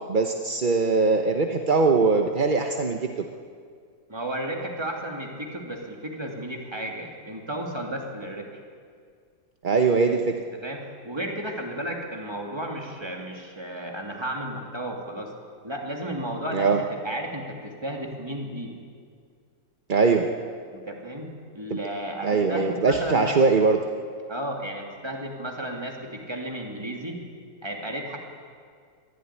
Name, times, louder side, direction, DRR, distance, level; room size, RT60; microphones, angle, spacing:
voice 1, 0.0-3.2 9.6-10.3 16.5-16.8 19.9-20.3 21.7-21.8 22.2-23.8, right 4 dB, 35° right, 4 dB, 0.8 m, -21 dB
voice 2, 4.1-8.5 10.6-15.3 15.6-18.7 20.7-23.4 24.3-27.2 27.6-28.2, right 1 dB, 15° right, 0 dB, 2.8 m, -33 dB
22.5 x 15.0 x 9.8 m, 2.1 s
omnidirectional pair, 2.1 m